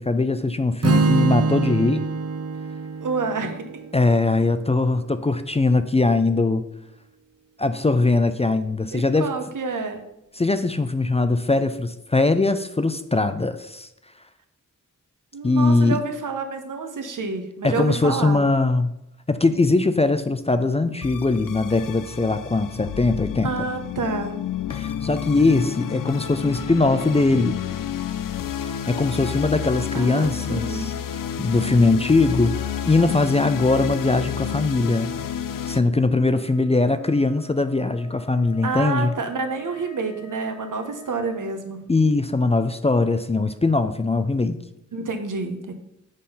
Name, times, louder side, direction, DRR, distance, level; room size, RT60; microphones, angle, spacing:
voice 1, 0.0-2.0 3.9-6.6 7.6-9.3 10.4-13.9 15.4-16.0 17.6-18.9 19.3-23.5 24.7-27.6 28.6-35.1 35.7-39.1 41.9-44.6, left 3 dB, 20° left, 10 dB, 0.4 m, -21 dB
Strum, 0.8-5.0, right 3 dB, 50° right, 0.7 m, -25 dB
voice 2, 3.0-3.6 8.9-10.0 15.3-18.4 23.4-24.3 29.9-30.9 38.6-41.9 44.9-45.7, right 4 dB, 75° right, 6 dB, 0.9 m, -28 dB
sound 1, 21.0-35.8, left 9 dB, 85° left, 0.5 m, -30 dB
Wind instrument woodwind instrument, 36.3-41.6, left 5 dB, 65° left, 0.9 m, -47 dB
6.5 x 3.7 x 5.5 m, 0.83 s
wide cardioid pair, 65°, 32 cm